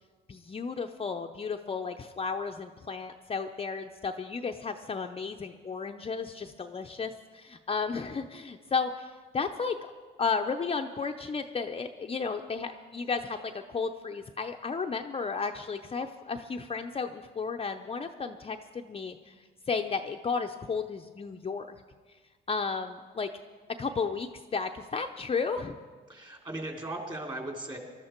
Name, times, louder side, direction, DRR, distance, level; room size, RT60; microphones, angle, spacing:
voice 1, 0.3-9.8 10.2-19.3 19.7-21.7 22.5-23.3 23.8-25.8, left 5 dB, 30° left, 5 dB, 0.6 m, -33 dB
voice 2, 26.1-27.8, right 1 dB, 20° right, 1 dB, 3.2 m, -37 dB
20.0 x 12.5 x 4.5 m, 1.5 s
cardioid pair, 90°, 20 cm